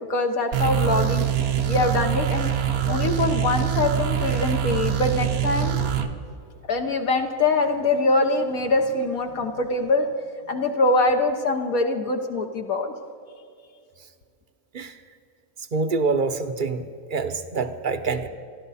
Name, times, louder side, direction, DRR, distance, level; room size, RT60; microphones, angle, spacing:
voice 1, 0.1-1.3 1.7-2.5 2.9-5.9 6.7-10.1 10.5-12.9, left 2 dB, 70° left, 3 dB, 1.5 m, -23 dB
sound 1, 0.5-6.1, right 9 dB, 75° right, 1.4 m, -24 dB
voice 2, 15.7-16.8 17.1-18.3, right 4 dB, 40° right, 8 dB, 0.8 m, -25 dB
28.5 x 12.0 x 4.2 m, 2.3 s
omnidirectional pair, 1.6 m